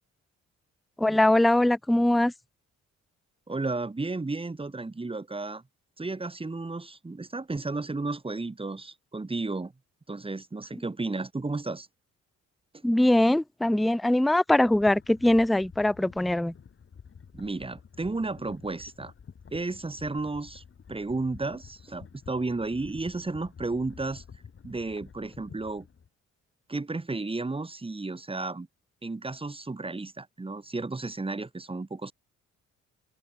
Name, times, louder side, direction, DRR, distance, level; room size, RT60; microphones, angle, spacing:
voice 1, 1.0-2.3 12.8-16.5, left 1 dB, ahead, 0.3 m, -22 dB
voice 2, 3.5-5.6 6.0-9.7 10.1-11.9 17.3-19.1 19.5-20.6 20.9-24.2 24.6-25.9 26.7-28.7 29.0-32.1, right 3 dB, 20° right, 2.9 m, -33 dB
sound 1, 14.5-26.1, left 6 dB, 45° left, 5.3 m, -50 dB
open air
cardioid pair, 90°, 30 cm